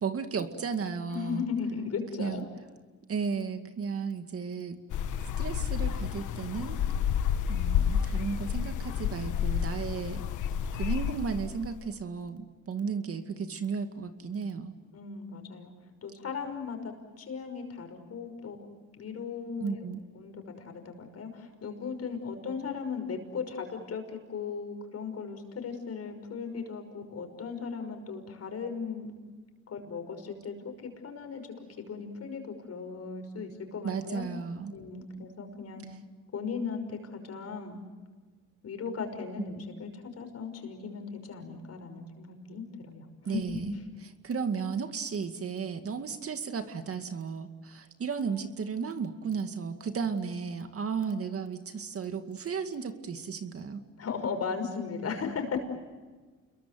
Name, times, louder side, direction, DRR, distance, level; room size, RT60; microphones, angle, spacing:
voice 1, 0.0-1.5 2.2-2.4 3.1-4.8 5.4-6.8 7.5-10.3 10.7-14.8 19.6-20.0 33.8-34.7 43.2-43.7 44.2-53.8, right 5 dB, 50° right, 7 dB, 2.2 m, -34 dB
voice 2, 1.1-2.5 14.9-15.7 16.0-18.7 19.0-19.8 20.2-29.1 29.7-31.4 31.9-34.2 34.7-35.8 36.3-37.8 38.6-43.6 54.0-55.6, left 5 dB, 55° left, 6 dB, 5.9 m, -37 dB
sound 1, 4.9-11.8, left 8 dB, 80° left, 1.4 m, -30 dB
29.0 x 22.5 x 7.8 m, 1.3 s
cardioid pair, 90°, 30 cm